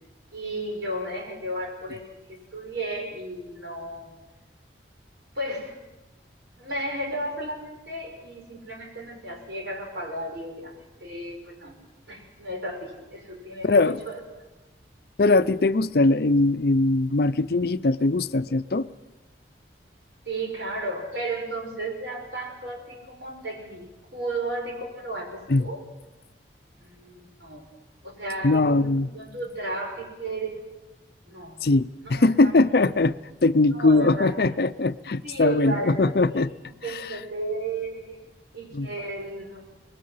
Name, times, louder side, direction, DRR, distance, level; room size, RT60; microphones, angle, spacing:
voice 1, 0.3-2.0 2.3-4.1 5.4-5.7 6.6-10.7 11.0-11.8 12.1-14.2 20.3-25.8 26.8-27.7 28.0-30.6 31.3-31.6 32.0-32.6 33.7-34.3 35.2-38.2 38.5-39.6, right 2 dB, 75° right, 2 dB, 5.5 m, -34 dB
voice 2, 13.6-14.0 15.2-18.9 25.5-25.6 28.4-29.1 31.6-36.5 36.9-37.1 38.7-38.9, left 2 dB, 55° left, 13 dB, 0.6 m, -21 dB
24.5 x 20.5 x 5.7 m, 1.1 s
head